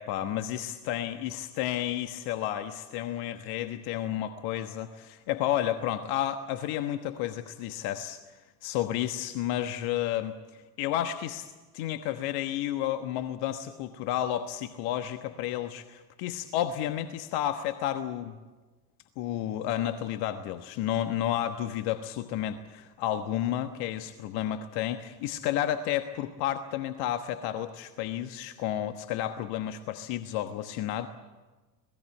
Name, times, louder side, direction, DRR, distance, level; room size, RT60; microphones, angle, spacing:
voice 1, 0.0-8.2 8.6-10.3 10.8-18.4 19.2-31.1, left 11 dB, 50° left, 9 dB, 1.3 m, -31 dB
26.0 x 19.0 x 7.8 m, 1.3 s
figure-of-eight pair, 75°, 48 cm